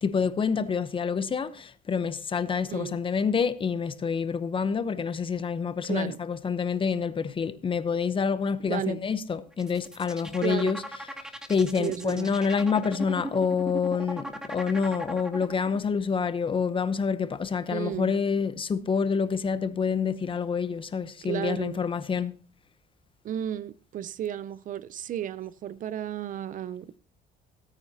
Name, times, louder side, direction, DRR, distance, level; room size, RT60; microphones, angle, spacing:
voice 1, 0.0-10.8 11.5-22.3, left 6 dB, 30° left, 0.8 m, -27 dB
voice 2, 5.8-6.2 8.6-9.0 10.4-10.8 11.8-12.3 17.7-18.1 21.2-21.8 23.2-26.9, right 10 dB, 50° right, 0.5 m, -33 dB
sound 1, 9.5-15.8, right 1 dB, 5° right, 1.2 m, -38 dB
16.5 x 9.2 x 2.8 m
cardioid pair, 110°, 17 cm